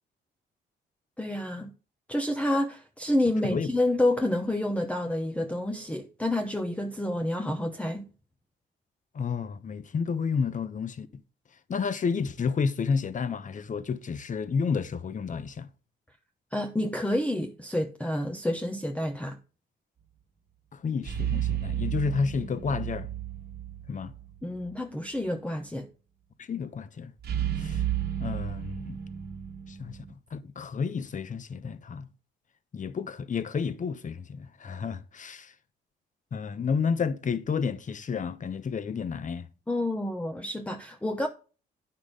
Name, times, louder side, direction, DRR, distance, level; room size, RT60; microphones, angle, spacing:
voice 1, 1.2-1.7 2.1-8.1 16.5-19.4 24.4-25.9 39.7-41.3, left 1 dB, 5° left, 0.9 m, -29 dB
voice 2, 9.1-11.2 11.7-15.7 20.7-23.1 23.9-24.1 26.4-27.1 27.6-27.8 28.2-29.0 29.7-32.1 32.7-35.5 36.3-39.5, left 5 dB, 40° left, 1.0 m, -31 dB
sound 1, 21.0-24.3 24.6-24.7 27.2-30.1, right 11 dB, 55° right, 1.5 m, -32 dB
9.7 x 5.9 x 5.0 m
cardioid pair, 90°, 20 cm